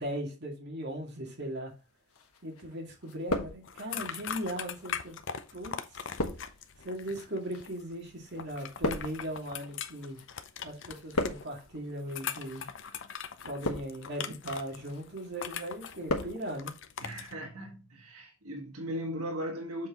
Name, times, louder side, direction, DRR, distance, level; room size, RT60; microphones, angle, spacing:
voice 1, 0.0-1.7 2.4-5.2 5.5-6.0 6.8-10.2 10.6-12.7 13.4-16.7, right 1 dB, 50° right, 2.4 m, -38 dB
sound 1, 2.1-2.7 3.0-4.1 4.8-10.4 10.7-11.7 12.4-12.7 13.3-14.2 14.6-15.0 15.4-16.4 16.6-16.7, left 2 dB, 90° left, 1.3 m, -36 dB
sound 2, 3.6-17.3, left 7 dB, 55° left, 0.7 m, -41 dB
voice 2, 17.0-19.9, equal, 90° right, 1.5 m, -37 dB
7.5 x 4.5 x 3.7 m
head